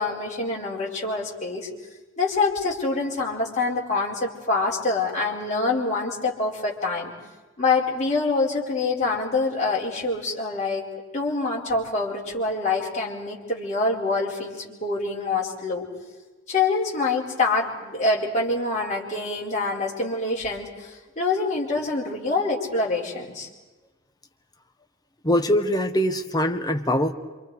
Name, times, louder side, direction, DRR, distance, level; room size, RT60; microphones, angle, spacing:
voice 1, 0.0-1.7 2.2-7.1 7.6-10.9 11.1-15.9 16.5-23.5, left 3 dB, 35° left, -4 dB, 4.3 m, -25 dB
voice 2, 25.2-27.1, equal, 20° left, 6 dB, 1.2 m, -22 dB
27.5 x 26.0 x 4.8 m, 1.2 s
head